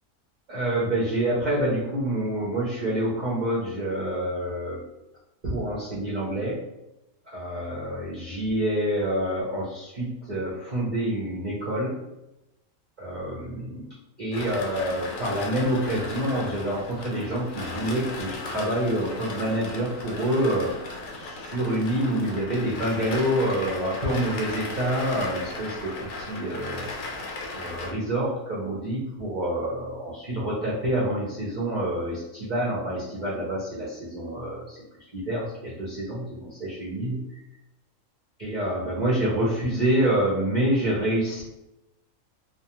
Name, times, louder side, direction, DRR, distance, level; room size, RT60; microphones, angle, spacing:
voice 1, 0.5-4.8 5.4-6.6 7.3-11.9 13.0-13.8 14.2-27.1 27.5-34.8 35.1-37.2 38.4-41.4, right 1 dB, 50° right, -8 dB, 0.6 m, -27 dB
sound 1, 14.3-27.9, left 2 dB, 75° left, 0.9 m, -36 dB
2.3 x 2.2 x 2.9 m, 0.92 s
omnidirectional pair, 1.4 m